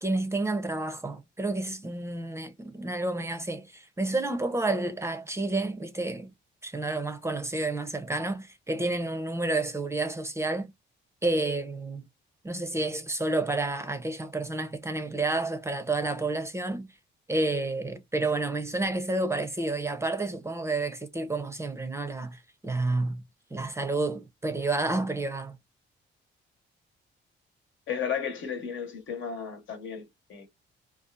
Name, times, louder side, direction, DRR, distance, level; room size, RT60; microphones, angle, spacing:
voice 1, 0.0-6.3 6.6-10.7 11.2-12.1 12.4-16.9 17.3-23.2 23.5-25.6, right 2 dB, 15° right, 0.5 m, -30 dB
voice 2, 27.9-30.5, left 7 dB, 75° left, 1.1 m, -34 dB
2.7 x 2.4 x 2.2 m
cardioid pair, 90°, 20 cm